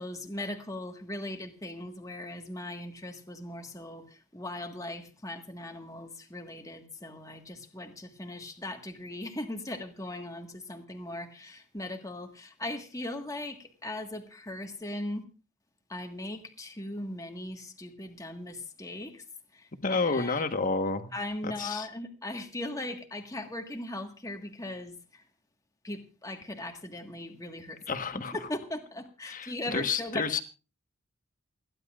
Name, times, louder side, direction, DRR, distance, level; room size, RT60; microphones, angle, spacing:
voice 1, 0.0-15.2 15.9-19.2 19.5-20.7 21.1-25.2 25.8-30.4, left 1 dB, 15° left, 4 dB, 1.6 m, -39 dB
voice 2, 19.8-21.1 21.4-21.9 27.9-28.4 29.3-30.4, left 4 dB, 40° left, 8 dB, 1.3 m, -30 dB
28.5 x 11.0 x 2.5 m, 0.32 s
head